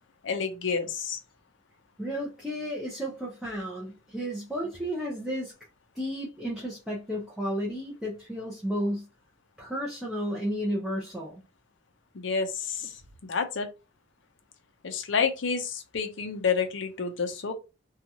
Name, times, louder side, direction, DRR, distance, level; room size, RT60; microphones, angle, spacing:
voice 1, 0.2-1.2 12.1-13.0 13.3-13.7 14.8-17.5, left 5 dB, 65° left, 0.6 m, -29 dB
voice 2, 2.0-5.5 5.9-9.1 9.6-11.4, equal, ahead, 0.6 m, -32 dB
2.8 x 2.3 x 2.7 m
head